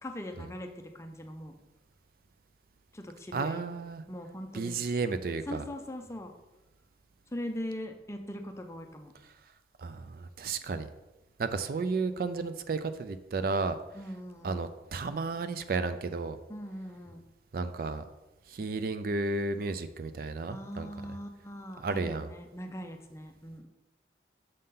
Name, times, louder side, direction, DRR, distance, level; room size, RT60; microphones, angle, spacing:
voice 1, 0.0-1.5 2.9-3.6 4.1-4.8 5.5-6.3 7.3-9.1 13.9-14.6 16.5-17.2 20.5-23.7, left 1 dB, 15° left, 5 dB, 0.5 m, -41 dB
voice 2, 3.3-4.0 4.5-5.6 9.8-10.9 11.4-13.8 14.4-16.4 17.5-18.0 18.5-20.9 21.8-22.3, right 3 dB, 50° right, 11 dB, 0.3 m, -32 dB
6.6 x 5.6 x 3.7 m, 1.0 s
head